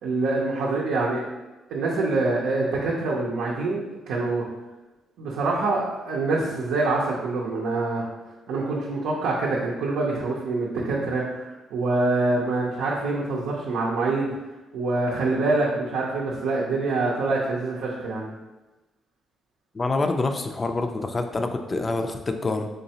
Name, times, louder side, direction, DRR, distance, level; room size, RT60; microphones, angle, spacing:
voice 1, 0.0-1.3 1.7-4.4 5.2-8.0 8.5-14.3 14.7-18.3, right 3 dB, 90° right, -4 dB, 0.6 m, -25 dB
voice 2, 19.7-22.7, left 3 dB, 30° left, 6 dB, 0.4 m, -26 dB
3.8 x 3.2 x 2.8 m, 1.1 s
cardioid pair, 90°, 0 cm